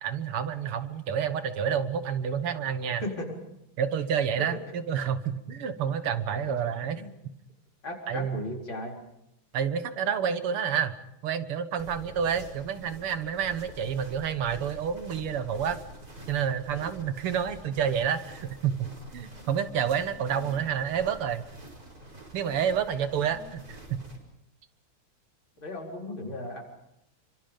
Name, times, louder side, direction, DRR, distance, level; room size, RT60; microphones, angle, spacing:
voice 1, 0.0-3.0 3.8-7.0 8.1-8.4 9.5-11.0 11.2-15.8 16.3-21.5 22.3-24.0, right 8 dB, 85° right, 11 dB, 2.3 m, -29 dB
voice 2, 3.0-3.4 4.4-4.5 6.3-6.6 7.0-7.1 7.8-8.9 20.4-20.6 23.3-23.5 25.6-26.6, left 1 dB, 65° left, 1 dB, 5.1 m, -36 dB
sound 1, 11.8-24.2, right 1 dB, 40° right, 5.8 m, -47 dB
29.0 x 25.0 x 5.3 m, 0.82 s
omnidirectional pair, 2.4 m